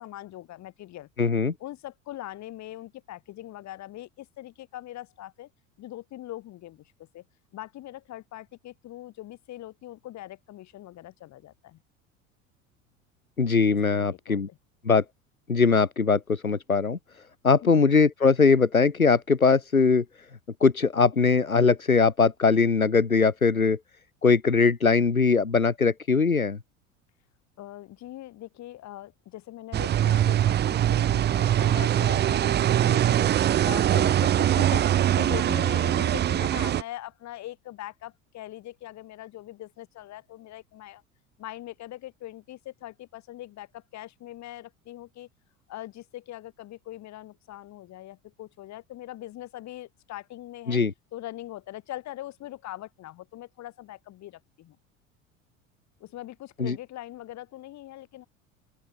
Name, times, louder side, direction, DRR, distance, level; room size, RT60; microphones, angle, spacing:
voice 1, 0.0-1.1 1.6-5.5 5.8-7.2 7.5-11.8 13.7-14.6 17.6-17.9 27.6-33.3 33.6-41.0 41.4-45.3 45.7-50.8 51.1-54.8 56.0-58.3, left 14 dB, 40° left, 6.5 m, -41 dB
voice 2, 1.2-1.5 13.4-14.5 14.8-15.0 15.5-17.0 17.4-20.0 20.6-23.8 24.2-26.6 50.7-50.9 56.6-56.8, left 4 dB, 85° left, 1.5 m, -21 dB
sound 1, 29.7-36.8, right 11 dB, 25° right, 0.8 m, -22 dB
open air
figure-of-eight pair, 75°, 41 cm